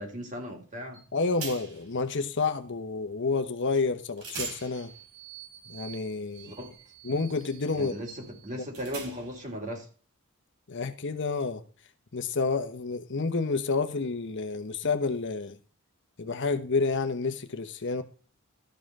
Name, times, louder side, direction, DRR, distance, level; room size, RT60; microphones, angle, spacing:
voice 1, 0.0-1.0 6.4-6.7 7.7-9.9, equal, 35° right, 3.0 m, -37 dB
sound 1, 0.9-1.1 1.4-1.9 3.7-3.9 4.2-9.5, right 5 dB, 80° right, 4.0 m, -43 dB
voice 2, 1.1-4.9 5.7-6.5 7.0-8.0 8.5-8.6 10.7-11.6 12.1-15.6 16.2-18.0, left 4 dB, 55° left, 1.0 m, -29 dB
13.0 x 5.6 x 5.4 m
head